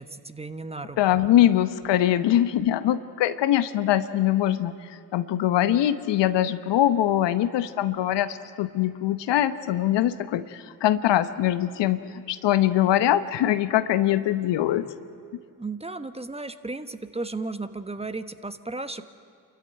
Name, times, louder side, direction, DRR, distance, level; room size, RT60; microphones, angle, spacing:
voice 1, 0.0-1.2 15.6-19.0, right 3 dB, 15° right, 10 dB, 1.2 m, -35 dB
voice 2, 1.0-14.9, left 12 dB, 65° left, 13 dB, 1.0 m, -23 dB
27.5 x 13.5 x 9.4 m, 2.3 s
hypercardioid pair, 50°, 45 cm